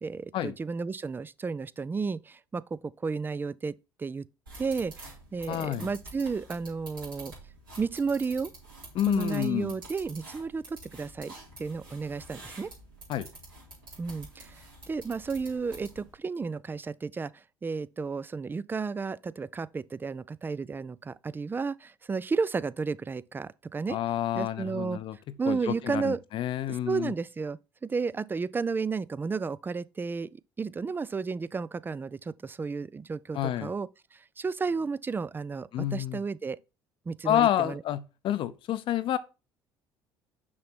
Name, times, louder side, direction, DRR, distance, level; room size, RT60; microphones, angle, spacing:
voice 1, 0.0-2.2 2.5-3.7 4.0-4.2 4.6-4.9 5.3-7.3 7.8-8.5 9.1-11.3 11.6-12.7 14.0-14.4 14.9-17.3 17.6-24.0 24.3-25.0 25.4-26.2 26.7-30.3 30.6-33.9 34.4-36.6 37.1-37.8, right 4 dB, 20° right, 0.4 m, -32 dB
sound 1, 4.5-16.1, right 2 dB, 85° right, 3.3 m, -48 dB
voice 2, 5.5-5.9 8.9-9.7 13.1-13.3 23.9-25.2 25.5-27.1 33.3-33.7 35.7-36.2 37.2-39.2, left 12 dB, 50° left, 0.6 m, -29 dB
6.2 x 5.9 x 4.4 m
figure-of-eight pair, 60°, 11 cm